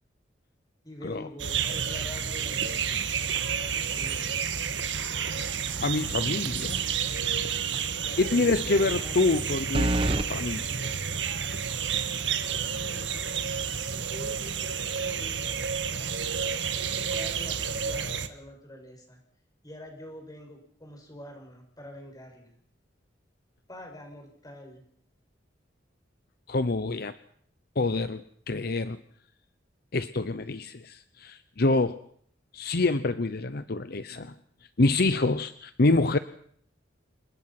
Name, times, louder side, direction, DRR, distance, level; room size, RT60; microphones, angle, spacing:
voice 1, 0.8-3.1 3.6-4.4 8.0-9.4 12.8-13.2 14.1-15.5 16.0-16.2 16.8-19.2 19.6-22.5 23.7-24.8, left 1 dB, 20° left, 2 dB, 6.9 m, -45 dB
sound 1, 1.4-18.3, right 7 dB, 80° right, 1.6 m, -30 dB
voice 2, 5.8-6.8 8.2-10.9 26.5-27.1 27.8-29.0 29.9-32.0 32.5-34.3 34.8-36.2, left 2 dB, 60° left, 12 dB, 0.8 m, -26 dB
sound 2, 6.6-7.1 7.4-7.5 9.7-10.3, right 1 dB, 30° right, 1.1 m, -27 dB
28.5 x 19.0 x 6.0 m, 0.64 s
head